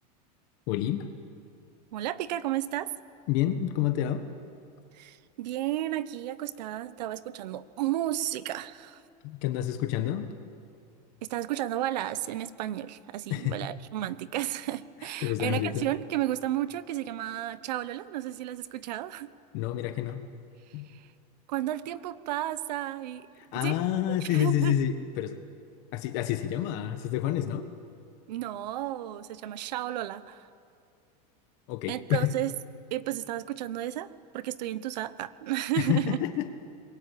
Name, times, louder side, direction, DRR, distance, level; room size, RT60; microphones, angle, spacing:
voice 1, 0.7-1.1 3.3-4.2 9.2-10.3 13.3-13.6 15.2-15.9 19.5-20.2 20.7-20.9 23.5-25.4 25.9-27.7 31.7-32.3 35.8-36.5, left 12 dB, 50° left, 7 dB, 1.5 m, -28 dB
voice 2, 1.9-2.9 4.9-9.0 11.2-19.3 20.9-21.1 21.5-23.3 23.5-23.7 24.2-24.8 28.3-30.5 31.9-32.5 32.9-34.1 34.3-36.2, right 13 dB, 90° right, 15 dB, 1.2 m, -32 dB
28.0 x 22.0 x 8.7 m, 2.3 s
supercardioid pair, 165°, 21 cm